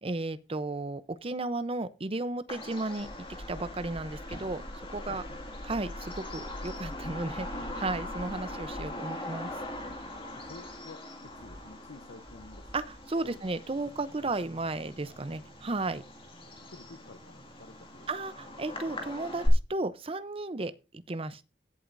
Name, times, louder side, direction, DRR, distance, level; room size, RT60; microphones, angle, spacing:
voice 1, 0.0-3.1 3.5-4.6 4.9-5.2 5.6-9.5 12.7-16.0 18.1-20.7 21.1-21.5, right 2 dB, 30° right, 0.7 m, -34 dB
Bird vocalization bird call bird song, 2.5-19.5, left 1 dB, 30° left, 2.1 m, -41 dB
sound 1, 3.0-8.9, left 1 dB, 50° left, 1.3 m, -44 dB
voice 2, 5.1-5.4 10.3-12.7 13.2-13.5 16.7-18.1, left 3 dB, 80° left, 0.8 m, -50 dB
sound 2, 9.4-13.7 14.1-14.2, equal, 15° right, 1.5 m, -56 dB
16.5 x 7.8 x 2.6 m
head